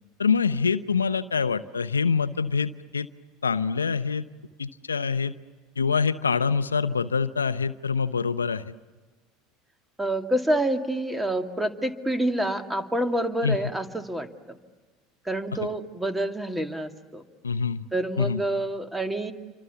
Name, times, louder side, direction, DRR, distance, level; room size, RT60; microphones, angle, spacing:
voice 1, 0.2-3.1 3.4-4.2 4.6-5.3 5.8-8.6 13.4-13.6 17.4-17.8 18.2-18.4, left 5 dB, 90° left, 14 dB, 0.7 m, -25 dB
voice 2, 10.0-14.6 15.2-17.2 17.9-19.3, right 1 dB, 10° right, 6 dB, 2.5 m, -27 dB
29.0 x 25.0 x 7.0 m, 1.3 s
hypercardioid pair, 75°, 0 cm